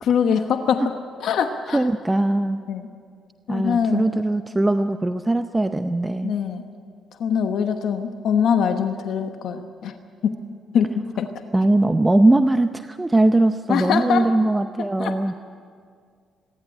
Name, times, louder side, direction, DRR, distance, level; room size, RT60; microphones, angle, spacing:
voice 1, 0.0-0.9 1.2-1.8 2.7-2.8 3.5-4.0 6.2-6.7 7.2-9.9 10.2-10.4 10.7-11.3 13.7-14.3 15.0-15.1, left 7 dB, 70° left, 7 dB, 1.0 m, -22 dB
voice 2, 1.7-2.6 3.5-6.3 11.5-15.3, right 2 dB, 15° right, 9 dB, 0.6 m, -20 dB
25.5 x 11.5 x 9.9 m, 2.1 s
cardioid pair, 90°, 0 cm